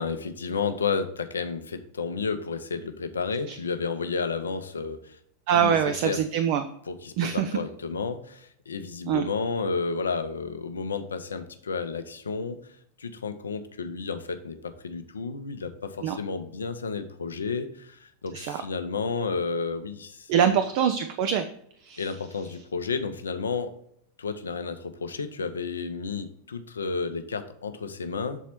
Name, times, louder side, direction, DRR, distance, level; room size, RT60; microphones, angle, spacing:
voice 1, 0.0-5.2 5.5-5.7 6.0-6.2 6.9-12.6 13.0-20.6 22.0-23.7 24.2-28.4, left 5 dB, 70° left, 9 dB, 0.7 m, -31 dB
voice 2, 5.5-6.7 7.2-7.5 9.1-9.3 16.0-16.2 18.3-18.6 20.3-21.5 21.8-22.1, right 8 dB, 45° right, 8 dB, 0.5 m, -24 dB
7.2 x 4.1 x 4.3 m, 0.71 s
figure-of-eight pair, 90°, 0 cm